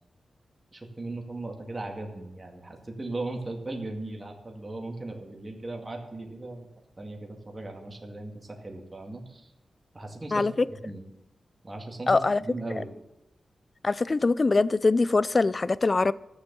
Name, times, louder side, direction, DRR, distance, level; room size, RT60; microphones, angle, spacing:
voice 1, 0.7-6.7 7.0-9.5 9.9-11.0 11.6-12.9, right 2 dB, 25° right, 1 dB, 2.2 m, -38 dB
voice 2, 12.1-12.4 13.8-16.1, left 3 dB, 35° left, 18 dB, 0.4 m, -23 dB
13.0 x 7.1 x 6.8 m, 0.93 s
wide cardioid pair, 105°, 0 cm